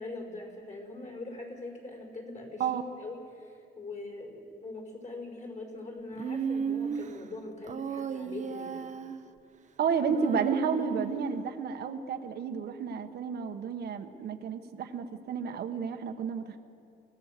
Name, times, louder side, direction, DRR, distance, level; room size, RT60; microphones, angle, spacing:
voice 1, 0.0-2.6 3.0-8.8, left 2 dB, 40° left, 1 dB, 5.3 m, -42 dB
Human voice, 6.2-7.1 7.7-9.2 10.1-11.4, right 7 dB, 40° right, 1.0 m, -34 dB
voice 2, 9.8-16.6, right 6 dB, 60° right, 5 dB, 1.3 m, -31 dB
25.0 x 16.0 x 6.7 m, 2.5 s
cardioid pair, 115°, 19 cm